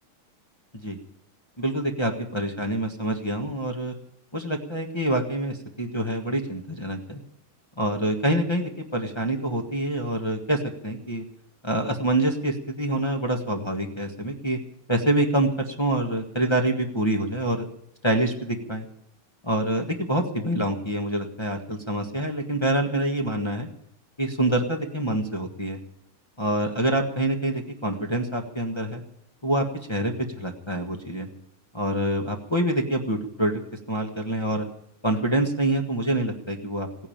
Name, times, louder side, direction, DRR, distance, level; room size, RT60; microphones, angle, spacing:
voice 1, 1.6-3.9 4.3-7.2 7.8-11.2 11.6-14.6 14.9-17.6 18.0-18.8 19.4-23.7 24.2-25.8 26.4-29.0 29.4-31.3 31.7-33.6 33.9-34.6 35.0-36.9, right 1 dB, 15° left, 1 dB, 1.2 m, -26 dB
16.5 x 9.9 x 8.8 m, 0.74 s
omnidirectional pair, 2.4 m